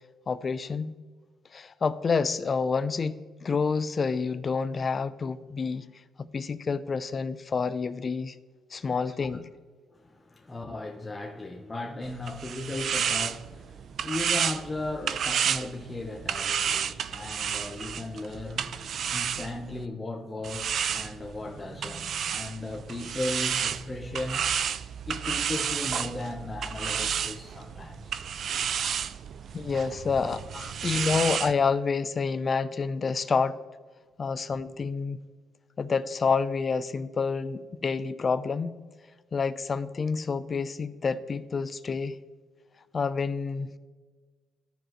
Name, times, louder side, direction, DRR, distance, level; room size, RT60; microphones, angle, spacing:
voice 1, 0.3-0.9 1.5-5.9 6.3-8.4 8.7-9.5 29.5-30.4 30.8-33.6 34.2-35.2 35.8-38.8 39.3-42.2 42.9-43.7, left 5 dB, 40° left, 0.5 m, -28 dB
voice 2, 8.8-9.2 9.9-24.6 25.1-28.2 30.2-30.7, left 2 dB, 20° left, 0.9 m, -37 dB
sound 1, 12.0-19.9 20.4-31.5, right 8 dB, 60° right, 0.3 m, -31 dB
13.5 x 4.9 x 3.0 m
cardioid pair, 90°, 0 cm